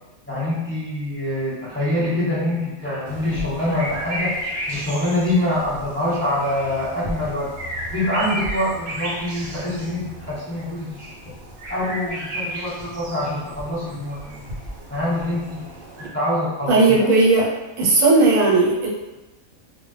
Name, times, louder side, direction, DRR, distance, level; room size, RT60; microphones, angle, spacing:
voice 1, 0.3-7.5 7.9-11.3 11.7-14.6 14.9-15.6 16.0-17.1, left 1 dB, 10° left, -12 dB, 1.1 m, -25 dB
sound 1, 3.0-16.1, right 1 dB, 60° right, 0.6 m, -33 dB
voice 2, 16.7-17.5 17.8-18.9, right 3 dB, 85° right, -4 dB, 1.1 m, -16 dB
2.2 x 2.0 x 3.1 m, 1.1 s
omnidirectional pair, 1.4 m